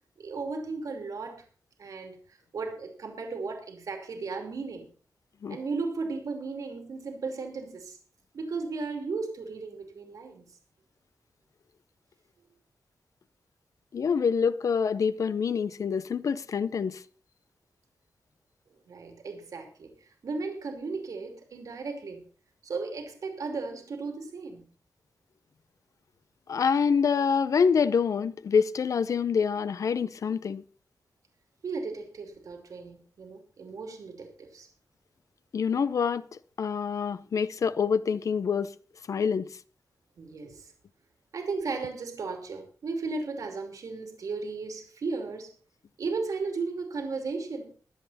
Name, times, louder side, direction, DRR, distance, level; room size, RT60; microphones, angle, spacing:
voice 1, 0.2-1.4 1.8-2.2 2.5-4.9 5.5-8.0 8.3-10.5 18.9-19.9 20.2-22.3 22.6-24.6 31.6-34.7 40.2-40.7 41.3-45.5 46.0-47.7, right 4 dB, 70° right, 2.7 m, -35 dB
voice 2, 13.9-17.0 26.5-30.6 35.5-38.7 39.1-39.5, left 6 dB, 65° left, 0.6 m, -26 dB
21.5 x 7.9 x 4.1 m
wide cardioid pair, 155°, 6 cm